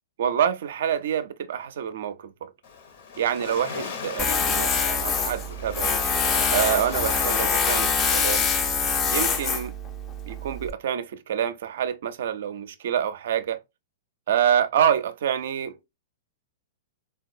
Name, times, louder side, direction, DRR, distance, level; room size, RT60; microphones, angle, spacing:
voice 1, 0.2-2.5 3.2-6.0 6.5-8.5 9.0-9.7 10.3-13.6 14.3-15.9, right 9 dB, 65° right, 0.4 m, -27 dB
Waves surf, 2.6-9.4, left 6 dB, 60° left, 0.8 m, -38 dB
Tools, 4.2-10.7, left 5 dB, 25° left, 0.4 m, -25 dB
3.7 x 2.2 x 2.5 m
hypercardioid pair, 110°, 0 cm